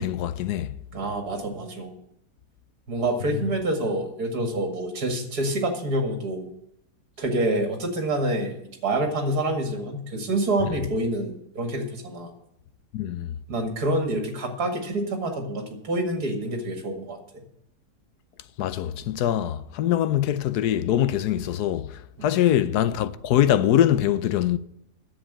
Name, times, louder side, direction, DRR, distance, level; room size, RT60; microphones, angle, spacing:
voice 1, 0.0-0.7 3.3-3.5 10.6-10.7 12.9-13.3 18.6-24.6, left 11 dB, 80° left, 1.2 m, -23 dB
voice 2, 0.9-1.9 2.9-6.5 7.2-12.3 13.5-17.2 22.2-22.4, right 1 dB, 70° right, 2.6 m, -27 dB
10.5 x 7.6 x 8.8 m
omnidirectional pair, 1.7 m